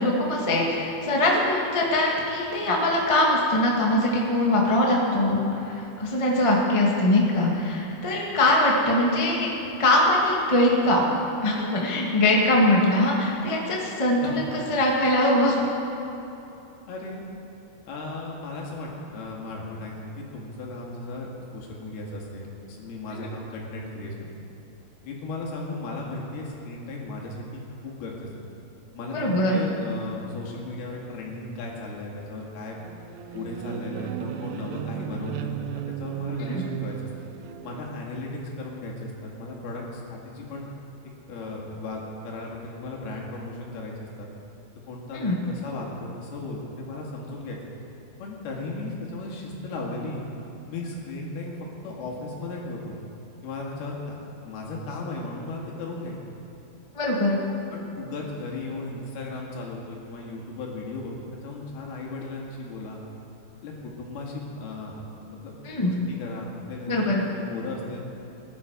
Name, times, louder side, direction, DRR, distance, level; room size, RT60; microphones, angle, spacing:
voice 1, 0.0-9.5 9.8-11.0 11.4-15.6 23.1-23.3 29.1-29.6 36.4-36.6 45.1-45.4 56.9-57.4 65.6-65.9 66.9-67.2, left 1 dB, 25° left, -2 dB, 0.6 m, -22 dB
voice 2, 16.9-17.2 17.9-21.3 21.5-24.3 25.1-28.5 28.9-29.2 29.5-32.8 33.3-36.5 36.8-37.0 37.6-40.7 41.3-44.3 44.9-47.6 48.2-50.2 50.7-51.6 51.8-53.0 53.4-54.2 54.4-56.2 57.7-61.1 61.4-63.0 63.6-68.0, left 2 dB, 85° left, -2 dB, 4.0 m, -36 dB
sound 1, 32.8-37.8, right 10 dB, 80° right, 2.4 m, -35 dB
19.5 x 11.0 x 5.1 m, 2.9 s
omnidirectional pair, 4.4 m